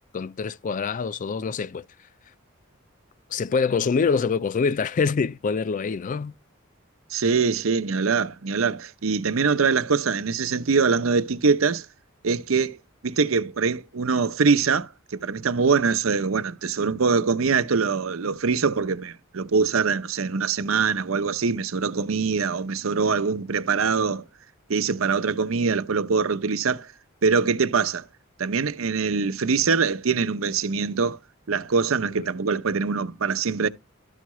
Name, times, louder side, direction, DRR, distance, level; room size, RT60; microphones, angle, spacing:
voice 1, 0.1-1.8 3.3-6.3 32.2-32.3, left 5 dB, 40° left, 0.4 m, -25 dB
voice 2, 7.1-11.9 12.2-12.8 13.0-24.2 24.7-26.9 27.2-28.0 28.4-31.2 31.5-33.7, right 5 dB, 85° right, 0.7 m, -23 dB
12.5 x 4.6 x 3.1 m
head